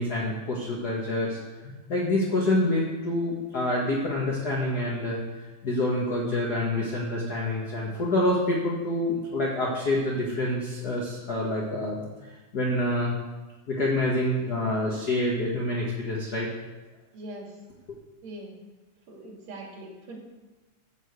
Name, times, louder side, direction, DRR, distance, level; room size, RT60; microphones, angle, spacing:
voice 1, 0.0-1.4 1.6-12.1 12.5-13.2 13.7-16.5 17.9-18.0, left 1 dB, 40° left, -3 dB, 1.7 m, -27 dB
voice 2, 17.1-17.5 18.2-18.5 19.1-20.2, right 1 dB, 65° right, -1 dB, 3.5 m, -41 dB
13.0 x 5.5 x 8.0 m, 1.2 s
omnidirectional pair, 3.4 m